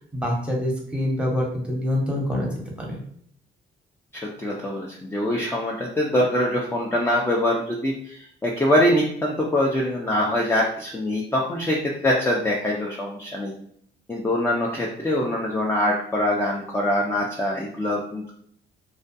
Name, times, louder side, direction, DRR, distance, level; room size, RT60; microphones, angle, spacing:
voice 1, 0.1-2.5 2.9-3.0, left 1 dB, 5° right, -2 dB, 0.8 m, -25 dB
voice 2, 4.1-13.5 14.1-18.3, left 1 dB, 10° left, -2 dB, 0.4 m, -24 dB
2.3 x 2.2 x 2.6 m, 0.65 s
cardioid pair, 90°, 20 cm